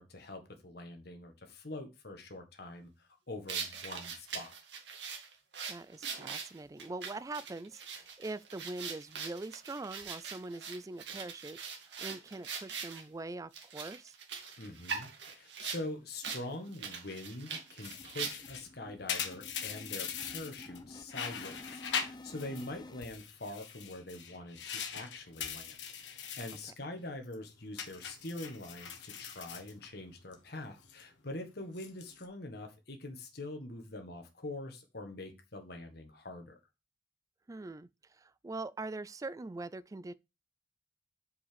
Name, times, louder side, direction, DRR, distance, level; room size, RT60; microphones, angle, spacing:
voice 1, 0.0-4.5 14.6-25.8 26.0-36.6, left 2 dB, 60° left, 1.6 m, -44 dB
sound 1, 3.5-13.0 13.5-15.8 16.2-16.4 16.7-18.6, right 6 dB, 75° right, 2.0 m, -42 dB
voice 2, 5.7-14.2 22.5-22.7 37.5-40.1, right 2 dB, 20° right, 0.3 m, -43 dB
sound 2, 16.2-16.3 16.7-16.9 17.1-23.1, left 2 dB, 25° left, 0.7 m, -52 dB
sound 3, 17.8-20.8 21.1-22.7 23.0-26.7 27.0-27.3 27.8-30.3 30.7-31.0 31.6-32.2, left 7 dB, 80° left, 1.4 m, -41 dB
5.6 x 5.3 x 6.7 m
head